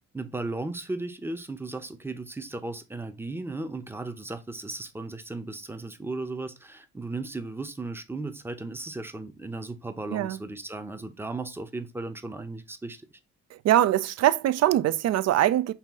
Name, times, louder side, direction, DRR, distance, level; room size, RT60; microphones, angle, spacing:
voice 1, 0.1-13.0, right 2 dB, 10° right, 0.6 m, -36 dB
voice 2, 13.5-15.7, right 13 dB, 60° right, 0.4 m, -23 dB
5.7 x 2.4 x 3.5 m
cardioid pair, 90°, 30 cm